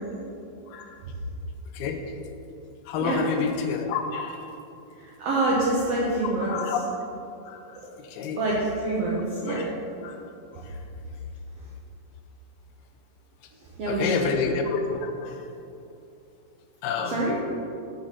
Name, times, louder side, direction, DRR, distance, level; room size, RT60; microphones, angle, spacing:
voice 1, 1.7-2.3 2.9-4.5 6.5-6.8 7.5-8.4 9.5-9.6 10.0-10.2 10.6-10.7 13.9-15.4 16.8-17.3, left 5 dB, 85° left, 5 dB, 2.6 m, -29 dB
voice 2, 5.0-6.6 8.4-9.7 13.6-14.3 17.0-17.4, right 2 dB, 85° right, -5 dB, 1.4 m, -26 dB
7.9 x 7.3 x 4.1 m, 2.7 s
omnidirectional pair, 4.4 m